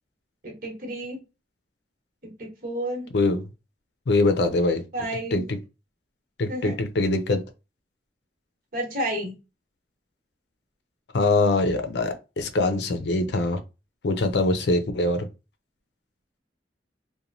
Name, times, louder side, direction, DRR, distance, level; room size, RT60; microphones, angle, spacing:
voice 1, 0.4-1.2 2.2-3.1 4.9-5.5 6.5-6.7 8.7-9.3, right 1 dB, 55° right, 1.1 m, -31 dB
voice 2, 4.1-4.8 5.3-5.4 6.4-7.4 11.1-13.6 14.0-15.3, left 2 dB, 70° left, 0.5 m, -23 dB
3.0 x 2.2 x 2.6 m
head